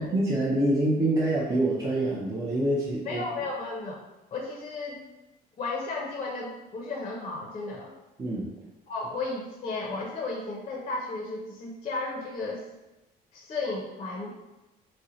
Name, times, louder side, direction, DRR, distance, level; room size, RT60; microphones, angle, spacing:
voice 1, 0.0-3.2 8.2-8.5, right 1 dB, 20° right, -6 dB, 0.5 m, -26 dB
voice 2, 3.1-4.0 4.3-5.0 5.6-7.9 8.9-12.7 13.3-14.3, left 3 dB, 35° left, -2 dB, 0.5 m, -34 dB
2.7 x 2.1 x 3.8 m, 1.0 s
cardioid pair, 110°, 17 cm